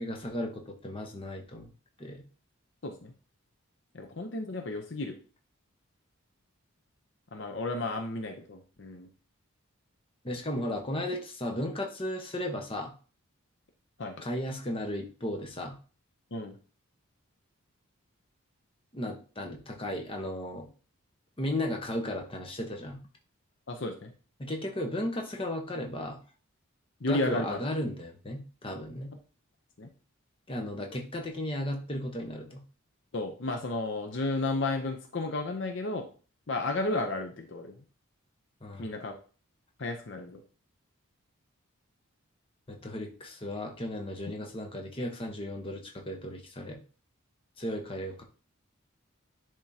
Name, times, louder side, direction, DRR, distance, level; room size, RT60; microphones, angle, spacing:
voice 1, 0.0-1.7 2.0-2.2 10.2-12.9 14.2-15.7 18.9-20.7 21.4-23.0 24.4-26.2 27.1-29.1 30.5-32.6 38.6-38.8 42.7-46.8 47.6-48.2, left 1 dB, 25° left, 2 dB, 1.0 m, -35 dB
voice 2, 2.8-3.1 3.9-5.2 7.3-9.1 14.0-14.3 16.3-16.6 23.7-24.1 27.0-27.6 29.8-29.9 33.1-36.1 36.5-37.8 38.8-39.1 39.8-40.4, left 2 dB, 55° left, 4 dB, 0.7 m, -33 dB
10.5 x 3.6 x 2.8 m, 0.37 s
head